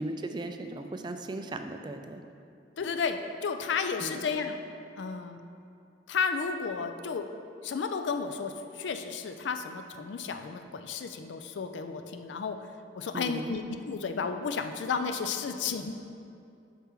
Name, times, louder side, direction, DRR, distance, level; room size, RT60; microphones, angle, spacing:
voice 1, 0.0-2.2 4.0-4.3 13.1-13.6, right 2 dB, 25° right, 6 dB, 0.3 m, -37 dB
voice 2, 2.8-4.6 5.0-5.4 6.1-7.3 7.6-12.6 13.0-15.9, left 5 dB, 75° left, 7 dB, 0.4 m, -32 dB
7.2 x 4.4 x 3.6 m, 2.5 s
head